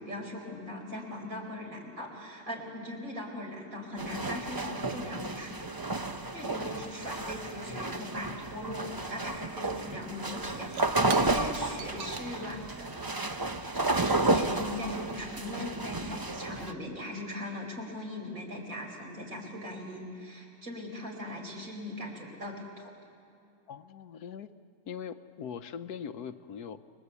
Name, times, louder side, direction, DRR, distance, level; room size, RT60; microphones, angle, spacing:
voice 1, 0.0-5.8 6.3-12.9 13.7-22.9, left 1 dB, 55° right, 0 dB, 5.0 m, -40 dB
sound 1, 4.0-16.7, right 2 dB, 25° right, 0.5 m, -32 dB
Shatter / Crushing, 10.1-14.9, right 8 dB, 90° right, 1.5 m, -46 dB
voice 2, 23.7-24.5 24.9-26.9, left 7 dB, 75° left, 11 dB, 1.3 m, -41 dB
29.5 x 21.5 x 8.2 m, 2.5 s
omnidirectional pair, 1.7 m